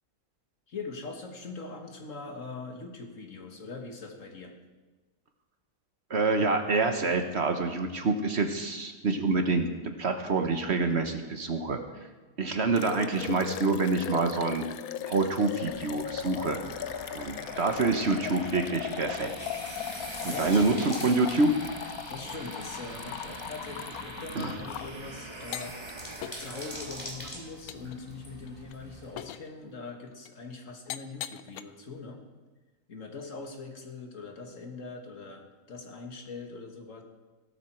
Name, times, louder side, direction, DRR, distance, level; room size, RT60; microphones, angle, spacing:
voice 1, 0.7-4.6 20.3-20.9 22.1-25.8 26.4-32.2 32.9-37.0, left 4 dB, 60° left, 3 dB, 1.9 m, -42 dB
voice 2, 6.1-9.7 10.0-11.8 12.4-14.6 15.1-16.6 17.1-19.5 20.2-21.5 24.4-24.5, right 3 dB, 50° right, 6 dB, 1.2 m, -27 dB
sound 1, 12.8-24.9 25.4-25.9 26.2-26.5 27.0-27.1 27.7-28.0 28.5-28.7 29.2-29.5 30.3-30.4 30.9-31.6, left 11 dB, 85° left, 1.1 m, -39 dB
sound 2, 15.7-29.2, equal, 20° left, 3.0 m, -45 dB
sound 3, 15.8-28.9, right 3 dB, 25° right, 0.8 m, -45 dB
16.5 x 12.5 x 4.5 m, 1.3 s
omnidirectional pair, 1.5 m